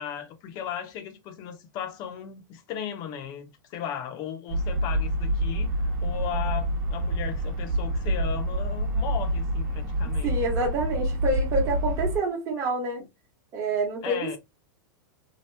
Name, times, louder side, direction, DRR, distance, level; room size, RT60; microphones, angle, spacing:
voice 1, 0.0-10.4 14.0-14.4, left 9 dB, 35° left, 0.7 m, -36 dB
sound 1, 4.5-12.2, right 1 dB, 50° right, 1.0 m, -27 dB
voice 2, 10.0-13.0 13.5-14.4, right 2 dB, 30° right, 1.1 m, -28 dB
2.9 x 2.2 x 3.2 m
supercardioid pair, 150°, 11 cm